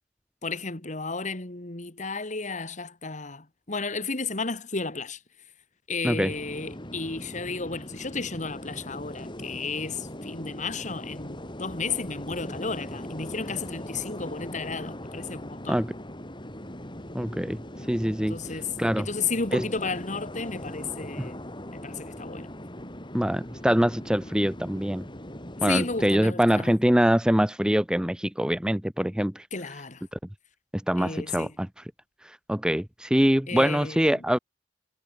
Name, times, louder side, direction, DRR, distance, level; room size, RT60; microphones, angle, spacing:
voice 1, 0.4-5.2 5.9-15.8 18.2-21.4 21.7-22.5 25.7-26.7 29.5-30.0 31.0-31.5 33.5-34.0, left 4 dB, 45° left, 2.4 m, -33 dB
sound 1, 6.3-26.1, left 1 dB, 25° left, 7.5 m, -40 dB
voice 2, 17.1-18.4 18.8-19.1 19.5-19.6 21.2-21.3 23.1-25.0 25.6-29.5 30.1-30.2 30.9-31.8 32.2-34.4, equal, 5° right, 0.7 m, -24 dB
head